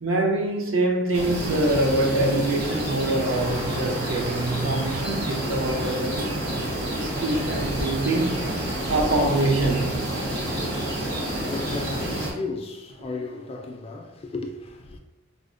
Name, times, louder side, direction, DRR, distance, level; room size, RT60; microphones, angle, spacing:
voice 1, 0.0-6.4 6.9-8.5 8.9-10.0, right 2 dB, 75° right, 0.6 m, -25 dB
sound 1, 1.1-12.3, right 1 dB, 50° right, 1.0 m, -29 dB
sound 2, 3.2-9.2, right 1 dB, 30° right, 0.6 m, -39 dB
voice 2, 10.8-15.0, left 3 dB, 30° left, 0.3 m, -35 dB
4.9 x 2.0 x 2.5 m
head